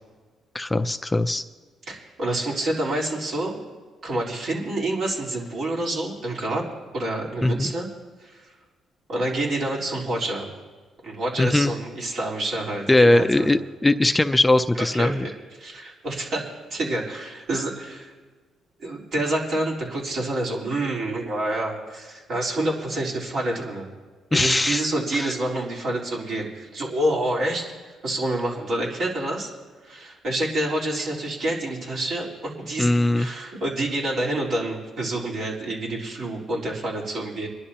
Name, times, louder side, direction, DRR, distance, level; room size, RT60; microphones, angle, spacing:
voice 1, 0.5-1.4 7.4-7.7 11.4-11.7 12.9-15.3 24.3-24.8 25.1-25.3 32.8-33.3, left 2 dB, 15° left, 9 dB, 0.5 m, -20 dB
voice 2, 1.9-3.6 4.0-6.6 6.9-7.9 8.2-8.5 9.1-10.5 11.0-13.5 14.8-15.3 15.6-18.1 18.8-23.9 24.3-29.5 29.8-32.9 33.2-37.5, right 1 dB, 65° right, -3 dB, 3.9 m, -28 dB
26.5 x 11.0 x 2.9 m, 1.4 s
cardioid pair, 90°, 0 cm